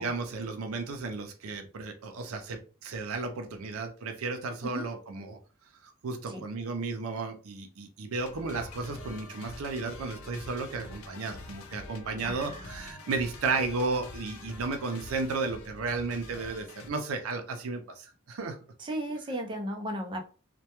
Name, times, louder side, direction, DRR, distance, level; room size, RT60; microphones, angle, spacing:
voice 1, 0.0-5.4 5.8-18.6, right 3 dB, 80° right, 0.5 m, -34 dB
sound 1, 8.2-16.9, left 2 dB, 90° left, 0.5 m, -45 dB
voice 2, 12.2-12.8 18.8-20.2, right 1 dB, 25° right, 0.4 m, -35 dB
2.2 x 2.1 x 2.8 m
head